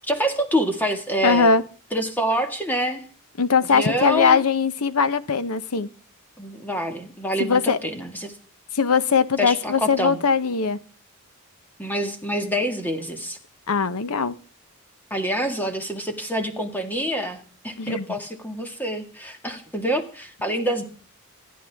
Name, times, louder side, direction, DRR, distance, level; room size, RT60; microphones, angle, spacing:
voice 1, 0.1-1.5 1.9-3.1 3.7-4.4 6.4-8.3 9.4-10.2 11.8-13.4 15.1-20.8, equal, 10° left, 5 dB, 1.9 m, -26 dB
voice 2, 1.2-1.6 3.4-5.9 7.4-7.8 8.7-10.8 13.7-14.3 17.8-18.0, left 5 dB, 85° left, 14 dB, 0.9 m, -20 dB
26.5 x 10.5 x 3.5 m, 0.41 s
head